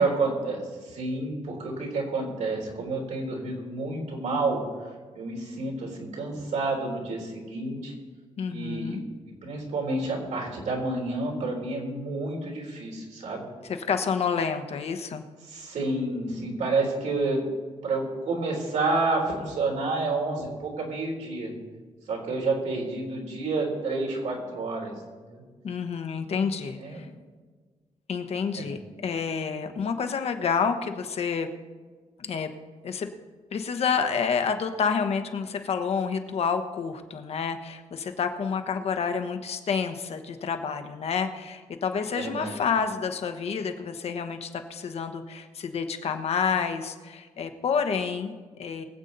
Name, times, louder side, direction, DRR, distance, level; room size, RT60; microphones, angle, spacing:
voice 1, 0.0-4.6 5.1-7.9 8.5-9.0 9.4-13.5 15.4-17.4 17.8-21.5 22.1-24.9 25.3-25.4 26.8-27.1 28.5-28.7 42.1-42.6, right 3 dB, 80° right, -1 dB, 3.7 m, -29 dB
voice 2, 8.4-9.0 13.6-15.2 25.6-27.1 28.1-31.5 32.2-32.5 32.8-33.1 33.5-48.8, left 6 dB, 60° left, 7 dB, 1.2 m, -29 dB
23.0 x 8.2 x 4.1 m, 1.5 s
wide cardioid pair, 160°, 12 cm